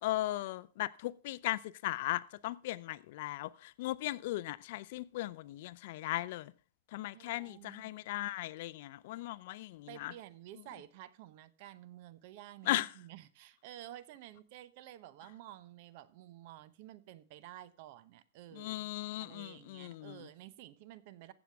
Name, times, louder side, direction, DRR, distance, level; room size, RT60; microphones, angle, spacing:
voice 1, 0.0-6.5 6.9-10.1 12.6-12.9 18.5-20.3, left 16 dB, 55° left, 0.4 m, -37 dB
voice 2, 7.1-7.9 9.9-18.9 19.2-21.3, right 13 dB, 50° right, 0.8 m, -52 dB
15.0 x 7.2 x 3.4 m
supercardioid pair, 155°, 0 cm